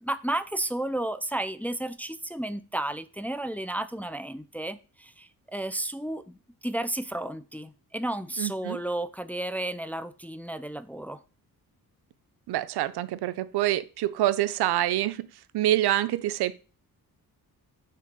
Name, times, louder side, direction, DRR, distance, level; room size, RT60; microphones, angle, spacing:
voice 1, 0.0-11.2, right 1 dB, 5° left, 0.3 m, -32 dB
voice 2, 8.4-8.8 12.5-15.3 15.5-16.6, right 14 dB, 85° right, 0.6 m, -26 dB
6.0 x 3.4 x 6.0 m
cardioid pair, 85°, 38 cm